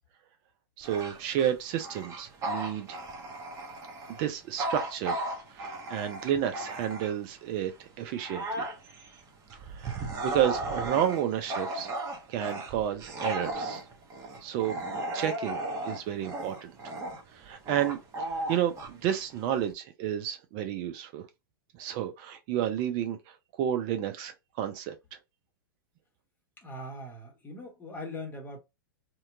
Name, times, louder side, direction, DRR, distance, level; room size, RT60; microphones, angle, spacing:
Bark / Growling, 0.8-7.4 7.8-19.7, right 1 dB, 25° right, 0.8 m, -36 dB
voice 1, 0.8-3.0 4.1-8.7 9.6-11.9 12.3-13.8 14.4-14.8 15.1-15.6 15.8-16.7 17.3-21.3 21.7-25.2, right 10 dB, 40° right, 0.5 m, -31 dB
voice 2, 26.6-28.6, left 1 dB, 15° left, 1.0 m, -41 dB
2.7 x 2.2 x 2.5 m
hypercardioid pair, 110°, 12 cm